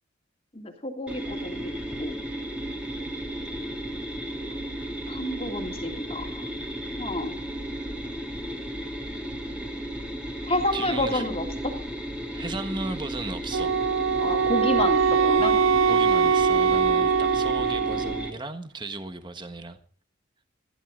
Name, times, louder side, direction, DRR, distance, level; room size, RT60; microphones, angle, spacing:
voice 1, 0.5-1.7 2.0-2.2 5.1-6.5 7.0-7.4 10.5-11.7 14.2-15.6, left 1 dB, 30° left, 3 dB, 3.0 m, -29 dB
sound 1, 1.1-18.3, equal, 5° right, 3.0 m, -34 dB
voice 2, 10.7-11.2 12.3-13.8 15.9-19.8, right 2 dB, 20° right, 8 dB, 1.4 m, -35 dB
Wind instrument woodwind instrument, 13.5-18.3, right 6 dB, 80° right, 0.6 m, -22 dB
21.5 x 15.0 x 3.9 m, 0.43 s
head